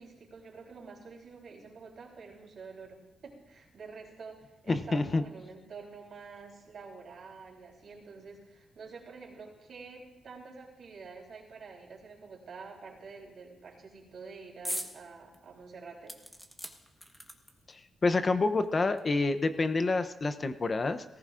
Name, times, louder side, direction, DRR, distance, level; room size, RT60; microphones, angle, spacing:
voice 1, 0.0-16.2, right 4 dB, 60° right, -1 dB, 3.5 m, -48 dB
voice 2, 4.7-5.2 17.7-21.0, left 3 dB, 35° left, 10 dB, 0.6 m, -28 dB
sound 1, 14.7-14.9 15.3-15.4 16.1-17.7 18.6-18.7 19.0-19.1, equal, 5° left, 1.1 m, -40 dB
19.0 x 14.5 x 2.5 m, 1.0 s
cardioid pair, 115°, 0 cm